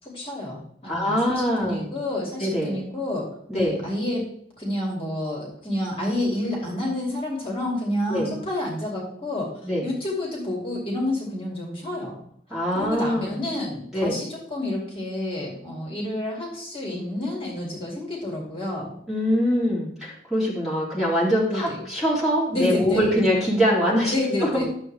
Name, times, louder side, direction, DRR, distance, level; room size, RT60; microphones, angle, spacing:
voice 1, 0.0-4.3 4.6-9.5 9.8-12.2 12.7-18.9 21.5-21.8 22.5-23.1 24.1-24.6, left 1 dB, 30° left, -3 dB, 2.4 m, -29 dB
voice 2, 0.9-1.9 2.4-2.8 3.5-3.8 8.1-8.3 9.6-9.9 12.5-13.4 13.9-14.2 19.1-24.1 24.4-24.6, equal, 5° right, -7 dB, 2.8 m, -23 dB
11.5 x 7.2 x 3.3 m, 0.68 s
head